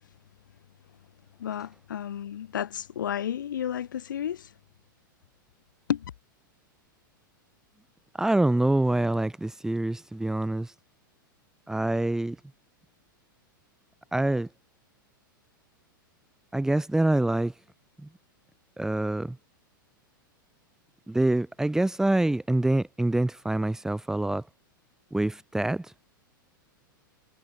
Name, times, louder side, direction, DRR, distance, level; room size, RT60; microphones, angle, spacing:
voice 1, 1.4-4.5 5.9-6.0, left 10 dB, 65° left, 6.1 m, -32 dB
voice 2, 8.2-10.7 11.7-12.4 14.1-14.5 16.5-17.5 18.0-18.1 18.8-19.4 21.1-24.4 25.1-25.9, right 1 dB, 5° right, 2.4 m, -25 dB
figure-of-eight pair, 95°, 11 cm